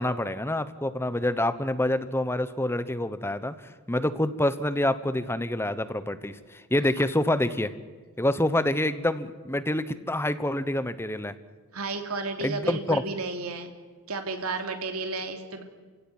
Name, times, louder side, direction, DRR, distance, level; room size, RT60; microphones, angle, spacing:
voice 1, 0.0-3.5 3.9-7.7 8.2-11.3 12.4-13.0, left 1 dB, 10° left, 13 dB, 1.0 m, -27 dB
voice 2, 11.7-13.7 14.1-15.6, right 3 dB, 75° right, 5 dB, 3.0 m, -32 dB
28.5 x 17.0 x 9.3 m, 1.4 s
head